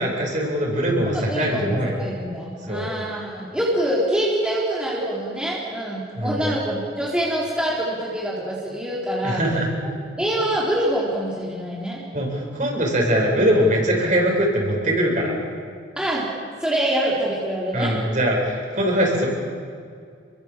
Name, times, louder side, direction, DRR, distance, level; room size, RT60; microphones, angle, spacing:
voice 1, 0.0-2.0 2.7-2.9 6.1-6.5 9.2-9.7 12.1-15.3 17.7-19.3, equal, 45° right, -1 dB, 7.6 m, -22 dB
voice 2, 1.1-9.4 10.2-12.0 16.0-16.3 16.6-17.9, right 1 dB, 5° right, -6 dB, 3.9 m, -25 dB
30.0 x 23.0 x 7.6 m, 2.3 s
head